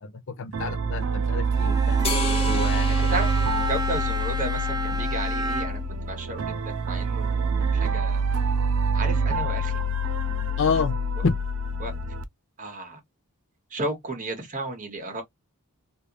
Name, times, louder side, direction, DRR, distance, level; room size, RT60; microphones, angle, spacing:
voice 1, 0.0-2.0 2.4-3.2 10.6-10.9 11.2-11.3, left 5 dB, 60° left, 0.6 m, -28 dB
sound 1, 0.5-12.2, right 2 dB, 70° right, 0.5 m, -26 dB
Bowed string instrument, 1.5-6.0, right 2 dB, 20° right, 0.4 m, -31 dB
sound 2, 2.0-4.8, left 3 dB, 25° left, 0.9 m, -34 dB
voice 2, 2.9-3.3 3.7-5.8 6.1-8.2 8.9-9.8 10.7-10.8 11.2-11.3 11.8-11.9 12.6-13.0 13.7-15.2, right 2 dB, 35° right, 1.2 m, -33 dB
3.3 x 2.5 x 2.9 m
head